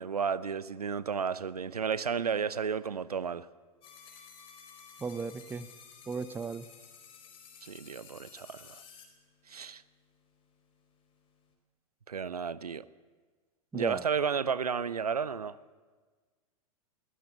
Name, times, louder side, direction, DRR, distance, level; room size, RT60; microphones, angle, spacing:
voice 1, 0.0-3.5 7.6-8.8 9.5-9.8 12.1-12.9 13.7-15.6, right 6 dB, 75° right, 0.8 m, -32 dB
sound 1, 3.8-9.0, left 6 dB, 25° left, 4.7 m, -53 dB
voice 2, 5.0-5.7 6.1-6.7 13.7-14.0, right 4 dB, 10° right, 0.9 m, -36 dB
22.5 x 17.0 x 8.1 m
figure-of-eight pair, 95°, 20 cm